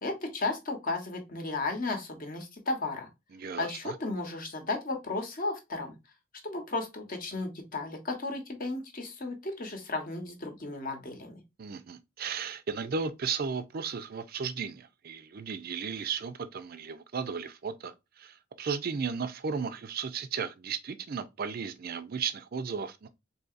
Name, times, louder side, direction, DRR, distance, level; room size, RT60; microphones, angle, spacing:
voice 1, 0.0-3.1 3.6-5.9 6.4-11.4, left 3 dB, 45° left, 0.9 m, -34 dB
voice 2, 3.3-3.9 11.6-23.1, right 6 dB, 45° right, 0.4 m, -35 dB
3.9 x 2.8 x 2.4 m
head